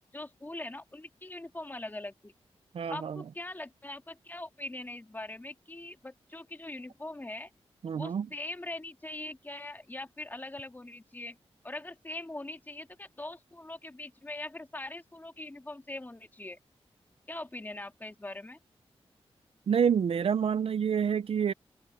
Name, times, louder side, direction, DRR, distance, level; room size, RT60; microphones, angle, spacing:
voice 1, 0.0-2.3 2.9-7.5 7.9-11.4 11.6-16.6 17.3-18.6, left 2 dB, 15° left, 2.5 m, -42 dB
voice 2, 2.7-3.2 7.8-8.3 19.7-21.5, right 7 dB, 60° right, 0.4 m, -28 dB
wide cardioid pair, 135°, 11 cm